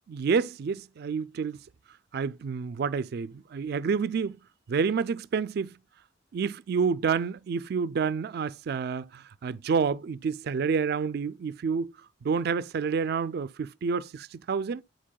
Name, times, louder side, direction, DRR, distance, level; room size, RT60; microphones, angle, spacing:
voice 1, 0.1-1.6 2.1-4.4 4.7-5.8 6.3-11.9 12.2-14.8, right 5 dB, 60° right, 0.4 m, -29 dB
10.5 x 4.4 x 2.2 m
head